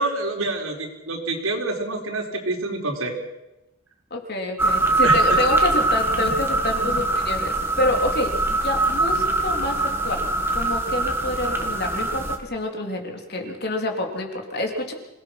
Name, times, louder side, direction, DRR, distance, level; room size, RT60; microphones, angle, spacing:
voice 1, 0.0-3.1 5.0-5.4 6.1-6.3 6.8-7.0, right 2 dB, 85° right, 1 dB, 4.5 m, -27 dB
voice 2, 4.1-9.8 10.0-10.3 10.5-14.9, left 1 dB, 50° left, 2 dB, 3.7 m, -27 dB
sound 1, 4.6-12.4, right 2 dB, 10° right, 2.0 m, -22 dB
26.5 x 18.5 x 6.2 m, 0.94 s
head